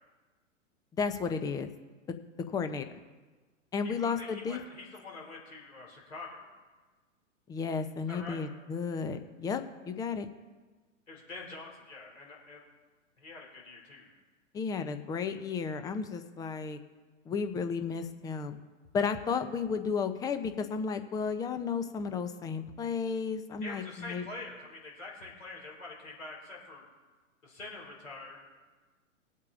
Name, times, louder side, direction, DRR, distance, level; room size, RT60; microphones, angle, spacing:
voice 1, 0.9-1.7 2.5-2.9 3.7-4.6 7.5-10.3 14.5-16.8 17.3-18.6 18.9-24.2, left 5 dB, 10° left, 9 dB, 0.5 m, -33 dB
voice 2, 3.8-6.5 8.1-8.4 11.1-12.6 13.2-14.1 23.6-26.8 27.4-28.4, left 3 dB, 80° left, -2 dB, 3.8 m, -45 dB
21.5 x 8.2 x 2.5 m, 1.3 s
figure-of-eight pair, 110°, 38 cm